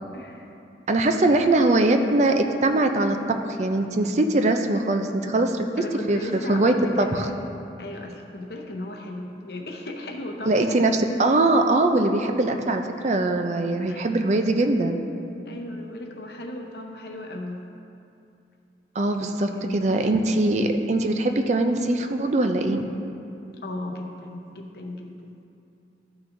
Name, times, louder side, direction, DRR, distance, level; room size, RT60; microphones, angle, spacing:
voice 1, 0.1-0.5 1.3-1.8 5.8-7.4 7.8-10.9 13.8-14.1 15.5-17.6 19.2-19.9 23.6-25.3, left 1 dB, 60° left, 2 dB, 0.8 m, -36 dB
voice 2, 0.9-5.7 6.1-7.3 10.5-15.0 19.0-22.9, right 2 dB, 40° right, 5 dB, 0.4 m, -22 dB
13.5 x 5.8 x 2.6 m, 2.7 s
head